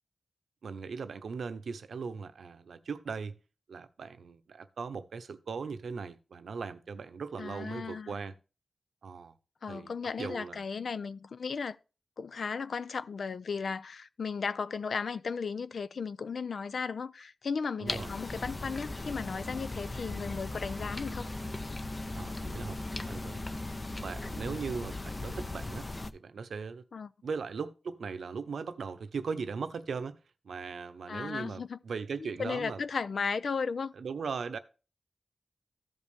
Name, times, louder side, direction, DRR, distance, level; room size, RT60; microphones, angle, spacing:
voice 1, 0.6-3.4 3.7-8.3 9.0-9.3 9.7-9.9 10.2-10.6 17.8-18.2 22.1-22.8 23.1-23.5 23.9-25.9 26.1-26.8 27.2-30.2 30.4-32.8 33.9-34.6, right 5 dB, 85° right, 0.8 m, -38 dB
voice 2, 7.4-8.1 9.6-11.8 12.2-21.3 26.9-27.1 31.1-31.8 32.2-33.9, left 5 dB, 70° left, 0.4 m, -35 dB
sound 1, 17.9-26.1, left 2 dB, 25° left, 0.6 m, -38 dB
14.5 x 5.4 x 3.4 m
wide cardioid pair, 125°, 0 cm